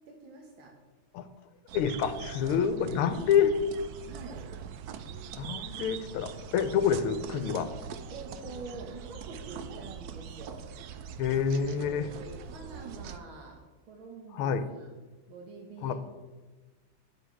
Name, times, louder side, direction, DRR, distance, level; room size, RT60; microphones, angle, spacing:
voice 1, 0.1-0.8 2.8-2.9 4.1-4.4 8.1-10.6 11.7-13.6 13.9-14.9 15.3-15.9, right 3 dB, 70° right, -1 dB, 2.1 m, -46 dB
voice 2, 1.7-3.5 5.4-7.7 11.2-12.1 14.3-14.6 15.8-15.9, left 7 dB, 85° left, 10 dB, 1.6 m, -27 dB
sound 1, 1.7-13.2, right 7 dB, 85° right, 0.8 m, -43 dB
10.5 x 7.7 x 4.6 m, 1.3 s
omnidirectional pair, 2.3 m